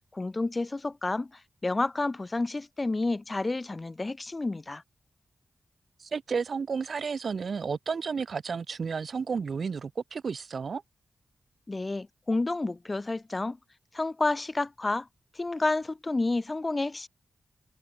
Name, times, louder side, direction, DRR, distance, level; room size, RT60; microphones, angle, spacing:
voice 1, 0.1-4.8 11.7-13.6 13.9-15.1 15.3-17.1, left 2 dB, 30° left, 0.3 m, -30 dB
voice 2, 6.0-10.8, right 5 dB, 65° right, 0.9 m, -32 dB
cardioid pair, 70°, 0 cm